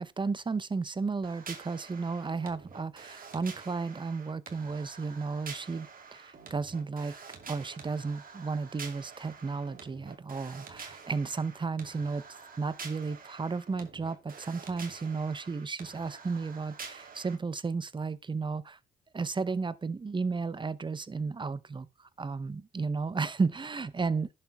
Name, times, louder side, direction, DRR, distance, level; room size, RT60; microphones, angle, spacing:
voice 1, 0.0-7.2 7.5-12.3 12.6-18.8 19.1-21.9 22.2-24.3, right 4 dB, 25° right, 0.8 m, -33 dB
sound 1, 1.2-17.4, right 5 dB, 45° right, 2.7 m, -48 dB
11.0 x 7.6 x 3.5 m
cardioid pair, 90°, 20 cm